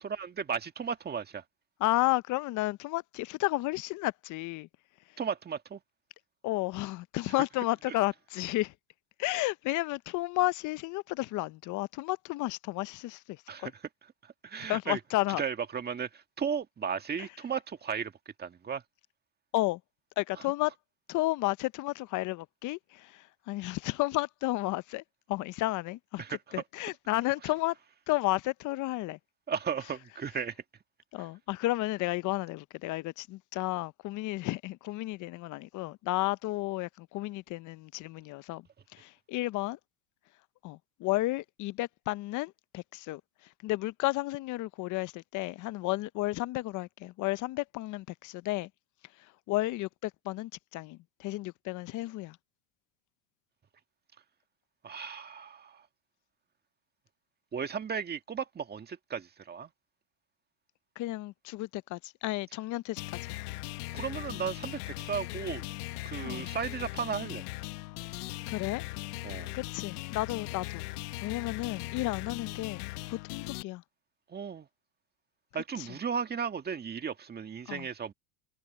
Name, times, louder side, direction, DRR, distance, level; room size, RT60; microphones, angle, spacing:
voice 1, 0.0-1.4 5.2-5.8 13.5-13.7 14.2-15.0 15.4-18.1 18.4-18.8 26.2-26.4 29.5-30.6 31.2-31.3 54.8-55.8 57.5-59.7 63.9-65.6 66.0-67.4 69.2-69.5 74.3-74.7 75.5-78.1, right 7 dB, 20° right, 1.7 m, -35 dB
voice 2, 1.8-4.7 6.4-8.7 9.2-13.7 14.6-15.4 19.5-19.8 20.2-20.7 21.1-27.8 28.1-29.2 31.1-38.7 38.9-39.8 40.6-48.7 49.2-52.4 61.0-63.0 66.2-66.5 68.5-68.9 69.5-70.9 71.2-73.8 75.8-75.9 77.7-77.9, left 19 dB, 45° left, 0.6 m, -32 dB
sound 1, 63.0-73.6, left 19 dB, 80° left, 1.5 m, -39 dB
supercardioid pair, 120°, 45 cm